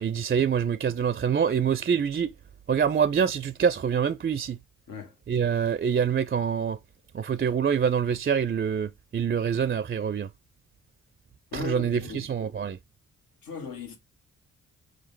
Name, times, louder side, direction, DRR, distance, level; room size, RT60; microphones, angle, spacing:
voice 1, 0.0-2.3 2.7-4.6 5.3-6.8 7.1-10.3 11.5-12.8, right 7 dB, 30° right, 0.4 m, -25 dB
voice 2, 11.5-12.3 13.4-14.0, left 6 dB, 80° left, 1.2 m, -37 dB
4.9 x 2.0 x 4.3 m
supercardioid pair, 45°, 34 cm